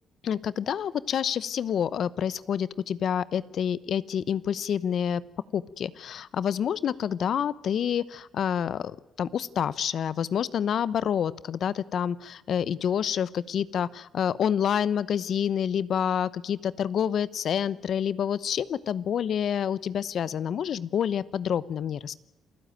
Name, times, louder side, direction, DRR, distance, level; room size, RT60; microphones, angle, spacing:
voice 1, 0.2-5.2 5.5-8.9 9.2-22.2, left 8 dB, 65° left, 19 dB, 0.9 m, -28 dB
28.0 x 15.5 x 9.2 m, 0.97 s
cardioid pair, 90°, 0 cm